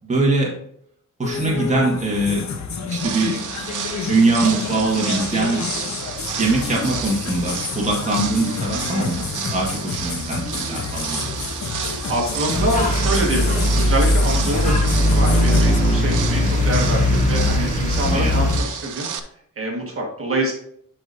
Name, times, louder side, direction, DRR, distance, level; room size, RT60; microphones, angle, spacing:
voice 1, 0.0-0.5 1.2-2.4 2.8-3.4 4.0-6.0 6.4-9.3 9.5-11.3 18.0-18.4, right 2 dB, 20° right, -3 dB, 1.6 m, -22 dB
sound 1, 1.2-15.8, left 5 dB, 60° left, 1.0 m, -29 dB
sound 2, 2.9-19.2, right 7 dB, 70° right, 0.7 m, -31 dB
voice 2, 12.1-19.1 19.6-20.5, right 1 dB, 45° right, -1 dB, 1.7 m, -25 dB
sound 3, 12.6-18.6, left 1 dB, 25° left, 1.5 m, -19 dB
11.0 x 5.0 x 2.6 m, 0.68 s
wide cardioid pair, 155°, 32 cm